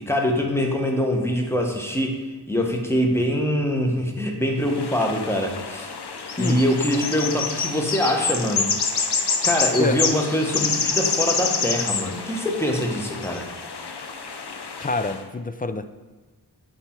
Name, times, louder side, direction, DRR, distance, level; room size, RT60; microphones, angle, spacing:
voice 1, 0.0-2.2 2.5-5.9 6.4-8.7 9.4-13.5, equal, 5° left, 2 dB, 1.0 m, -23 dB
sound 1, 4.6-15.2, left 5 dB, 75° left, 0.7 m, -27 dB
voice 2, 14.8-15.9, left 3 dB, 25° left, 10 dB, 0.3 m, -26 dB
7.9 x 4.2 x 4.4 m, 1.3 s
wide cardioid pair, 65°, 40 cm